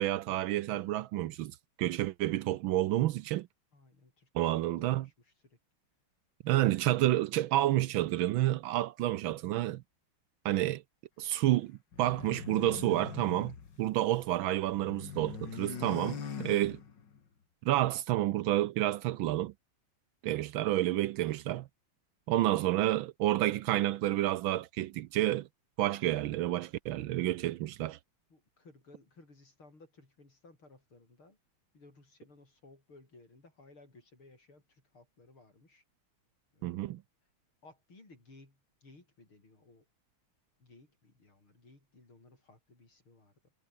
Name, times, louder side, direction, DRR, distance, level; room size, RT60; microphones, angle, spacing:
voice 1, 0.0-1.5 1.8-3.5 4.3-5.0 6.4-9.8 10.4-10.8 11.2-16.8 17.6-19.5 20.2-21.7 22.3-25.5 25.8-28.0 36.6-37.0, right 14 dB, 75° right, 1.4 m, -29 dB
voice 2, 3.7-5.6 22.6-22.8 28.3-31.4 31.7-35.8 36.5-37.0 37.6-39.9 40.6-43.5, left 2 dB, 80° left, 8.1 m, -59 dB
sound 1, 11.9-14.3 14.6-17.2, left 6 dB, 55° left, 2.6 m, -42 dB
omnidirectional pair, 2.3 m